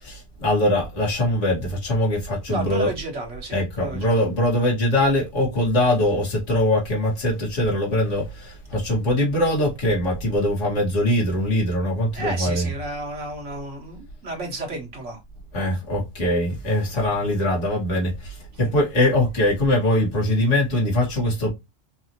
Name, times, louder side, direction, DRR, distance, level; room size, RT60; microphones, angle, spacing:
voice 1, 0.0-2.9 3.5-12.7 15.5-21.5, left 1 dB, 85° left, 2.0 m, -22 dB
voice 2, 2.5-4.1 12.1-15.2, right 2 dB, 75° right, 1.7 m, -32 dB
4.8 x 2.7 x 2.9 m
omnidirectional pair, 1.2 m